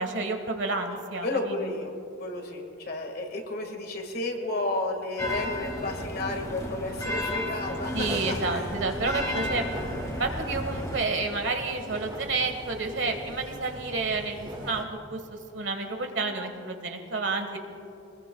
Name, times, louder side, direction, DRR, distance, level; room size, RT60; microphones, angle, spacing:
voice 1, 0.0-1.7 7.9-9.7 10.2-17.6, right 3 dB, 60° right, 5 dB, 1.5 m, -30 dB
voice 2, 1.2-1.9 2.2-8.7, left 2 dB, 45° left, 3 dB, 1.8 m, -32 dB
sound 1, 5.2-11.0, left 1 dB, 15° left, 2.2 m, -33 dB
sound 2, 8.0-14.8, right 1 dB, 20° right, 1.3 m, -42 dB
25.0 x 20.5 x 2.3 m, 2.8 s
head